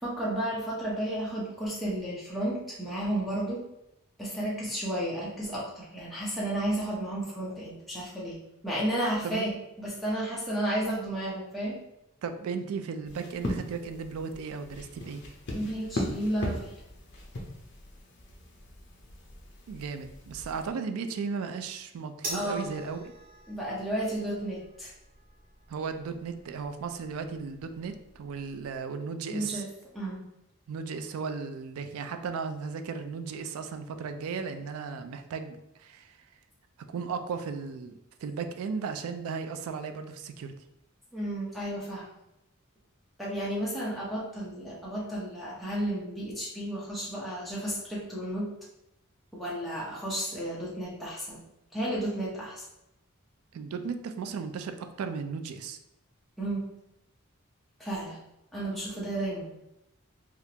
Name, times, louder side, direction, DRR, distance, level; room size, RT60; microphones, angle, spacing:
voice 1, 0.0-3.6 4.2-8.4 8.6-11.8 15.5-16.7 22.3-22.6 23.5-24.9 29.3-29.7 29.9-30.2 41.1-42.1 43.2-48.5 49.4-51.4 51.7-52.6 56.4-56.7 57.8-58.2 58.5-59.5, right 1 dB, ahead, -8 dB, 0.6 m, -32 dB
voice 2, 12.2-15.2 19.7-23.1 25.7-29.6 30.7-36.2 36.9-40.5 53.5-55.8, right 5 dB, 75° right, 8 dB, 0.3 m, -35 dB
sound 1, 13.0-20.7, left 1 dB, 50° left, 0.6 m, -39 dB
sound 2, 22.2-28.8, right 1 dB, 40° right, 0.8 m, -46 dB
3.4 x 2.4 x 2.8 m, 0.87 s
head